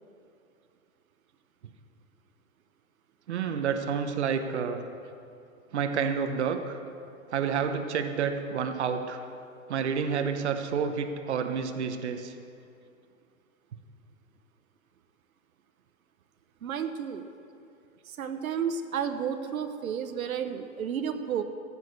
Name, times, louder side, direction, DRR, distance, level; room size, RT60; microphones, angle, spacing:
voice 1, 3.3-4.8 5.7-6.8 7.3-9.2 9.7-12.4, right 6 dB, 55° right, 7 dB, 1.0 m, -29 dB
voice 2, 16.6-17.2 18.0-21.4, right 7 dB, 80° right, 8 dB, 1.0 m, -32 dB
15.0 x 6.6 x 7.9 m, 2.5 s
hypercardioid pair, 175°, 41 cm